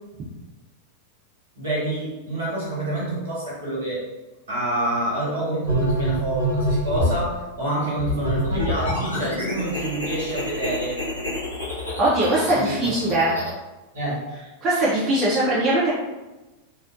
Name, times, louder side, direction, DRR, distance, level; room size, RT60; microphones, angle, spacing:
voice 1, 1.6-4.0 4.5-11.0 12.5-12.9 13.9-14.2, right 1 dB, 70° right, -7 dB, 1.3 m, -27 dB
sound 1, 5.6-7.2 8.0-13.5, equal, 90° left, 0.7 m, -26 dB
voice 2, 12.0-13.4 14.6-15.9, right 1 dB, 25° right, -8 dB, 0.6 m, -21 dB
2.6 x 2.0 x 2.5 m, 1.1 s
figure-of-eight pair, 90°, 0 cm